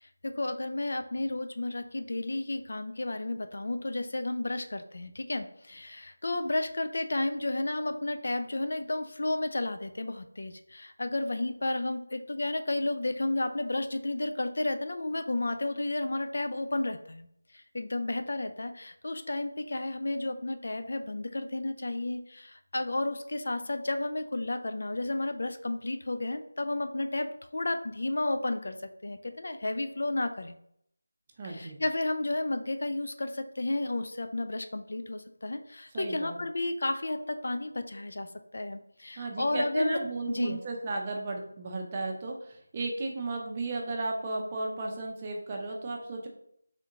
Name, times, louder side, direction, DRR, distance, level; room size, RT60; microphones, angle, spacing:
voice 1, 0.0-17.3 17.5-28.8 29.0-30.5 31.4-40.0 40.3-40.6, left 2 dB, 60° left, 8 dB, 0.4 m, -32 dB
voice 2, 31.4-31.8 35.9-36.4 39.2-46.3, right 2 dB, 25° right, 0 dB, 0.6 m, -34 dB
3.5 x 2.8 x 3.7 m, 0.71 s
figure-of-eight pair, 170°, 0 cm